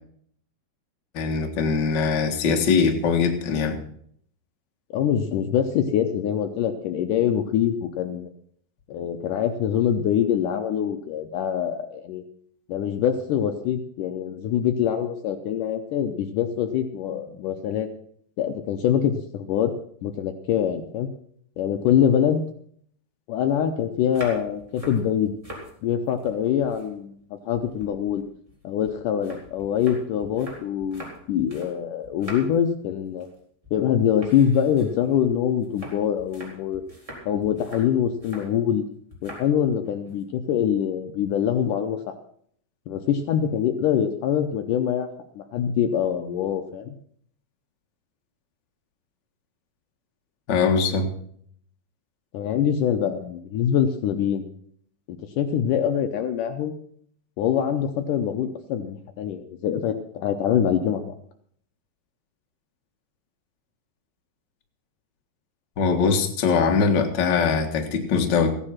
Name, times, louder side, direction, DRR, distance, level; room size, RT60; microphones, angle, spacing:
voice 1, 1.1-3.8 50.5-51.1 65.8-68.6, left 5 dB, 50° left, 3 dB, 1.4 m, -22 dB
voice 2, 4.9-8.3 8.9-12.2 12.7-17.9 18.4-19.7 20.0-21.1 21.6-22.4 23.3-25.3 25.8-28.2 28.6-33.3 33.7-36.8 37.3-38.8 39.2-42.1 42.9-45.1 45.4-47.0 52.3-54.5 55.1-56.7 57.4-61.2, left 9 dB, 75° left, 7 dB, 2.1 m, -24 dB
sound 1, 24.0-25.7 26.1-27.2 27.5-31.8 32.0-32.7 33.0-33.4 33.6-33.8 34.2-38.5 39.1-39.5 39.8-40.2, equal, 10° right, 3.9 m, -43 dB
15.5 x 9.9 x 5.8 m, 0.63 s
omnidirectional pair, 4.3 m